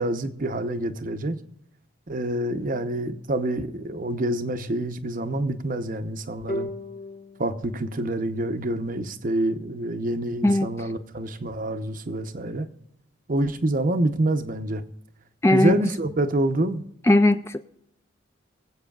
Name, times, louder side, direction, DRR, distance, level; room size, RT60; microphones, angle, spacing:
voice 1, 0.0-1.4 2.1-6.7 7.4-12.7 13.3-14.8 15.5-16.8, right 1 dB, 45° right, 0.8 m, -27 dB
sound 1, 6.5-9.8, left 1 dB, 45° left, 1.5 m, -38 dB
voice 2, 15.4-15.7 17.1-17.6, left 1 dB, 15° left, 0.3 m, -18 dB
24.0 x 8.1 x 2.4 m
head